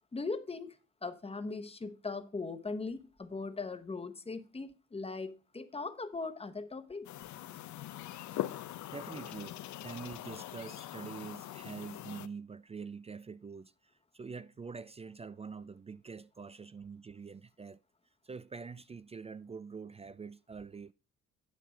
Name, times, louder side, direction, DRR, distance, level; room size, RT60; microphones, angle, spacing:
voice 1, 0.1-0.8 1.0-7.1, left 3 dB, 20° left, 1.0 m, -39 dB
sound 1, 7.0-12.3, left 13 dB, 75° left, 0.6 m, -42 dB
voice 2, 8.9-9.5 9.8-13.7 14.1-17.8 18.2-20.9, right 5 dB, 20° right, 0.3 m, -45 dB
9.6 x 5.8 x 4.9 m
cardioid pair, 90°, 30 cm